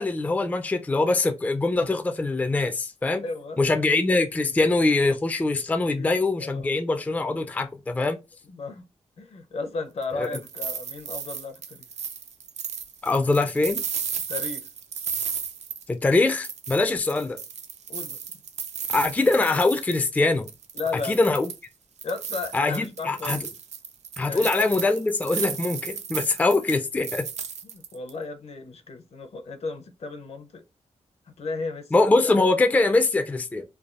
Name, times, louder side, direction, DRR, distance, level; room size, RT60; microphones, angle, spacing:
voice 1, 0.0-3.2 3.6-8.2 10.1-10.4 13.0-13.8 15.9-17.4 18.9-20.5 21.0-21.5 22.5-23.4 24.2-27.3 31.9-33.6, left 3 dB, 15° left, 0.3 m, -23 dB
voice 2, 3.1-3.8 5.9-6.1 6.3-6.7 8.5-8.8 9.2-11.8 14.3-14.6 16.7-16.9 17.9-18.2 20.7-21.3 22.0-23.4 24.3-24.5 27.6-30.6 31.4-31.9, left 4 dB, 60° left, 0.6 m, -34 dB
sound 1, 10.0-16.2 16.4-20.2 20.5-21.7 22.0-28.1, right 7 dB, 75° right, 0.4 m, -34 dB
3.3 x 2.2 x 2.4 m
wide cardioid pair, 115°, 12 cm